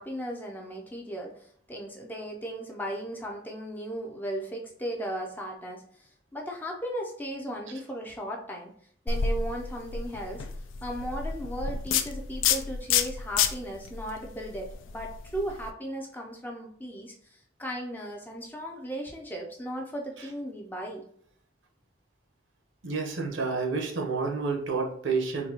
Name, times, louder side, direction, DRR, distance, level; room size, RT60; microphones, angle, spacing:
voice 1, 0.0-8.7 9.1-10.5 10.8-21.0, right 1 dB, 10° left, 0 dB, 0.4 m, -36 dB
sound 1, 9.1-15.7, left 7 dB, 85° left, 0.4 m, -30 dB
voice 2, 22.8-25.5, right 4 dB, 80° right, 2 dB, 0.8 m, -29 dB
4.0 x 2.6 x 2.8 m, 0.62 s
head